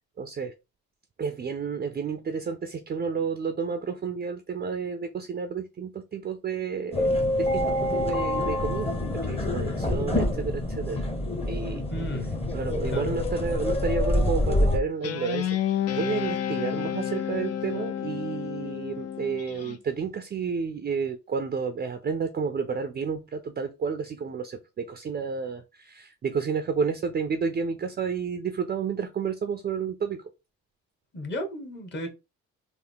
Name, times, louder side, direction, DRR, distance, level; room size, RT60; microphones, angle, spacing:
voice 1, 0.2-0.5 1.2-11.1 11.5-11.8 12.5-15.6 15.9-30.3, right 5 dB, 30° right, 0.5 m, -31 dB
sound 1, 6.9-14.8, left 1 dB, 20° left, 0.9 m, -26 dB
voice 2, 11.9-12.3 12.9-13.1 31.1-32.1, left 1 dB, 35° left, 1.2 m, -33 dB
Guitar, 15.0-19.8, left 10 dB, 55° left, 0.6 m, -30 dB
3.4 x 2.1 x 3.5 m
cardioid pair, 90°, 30 cm